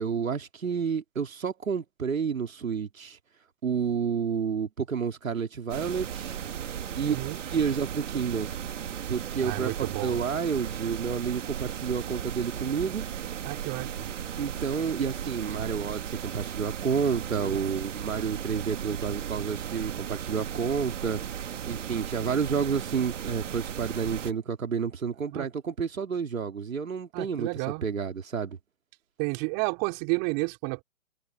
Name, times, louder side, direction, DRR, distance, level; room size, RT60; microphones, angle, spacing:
voice 1, 0.0-3.2 3.6-6.4 7.0-7.2 7.5-8.5 9.1-13.1 14.4-21.2 21.7-28.6, right 6 dB, 85° right, 3.5 m, -30 dB
sound 1, 5.7-24.3, right 9 dB, 65° right, 2.3 m, -36 dB
voice 2, 7.0-7.4 9.4-10.2 13.4-13.9 17.4-17.6 25.3-25.5 27.1-27.9 29.2-30.8, right 33 dB, 30° right, 4.8 m, -31 dB
hypercardioid pair, 145°, 40 cm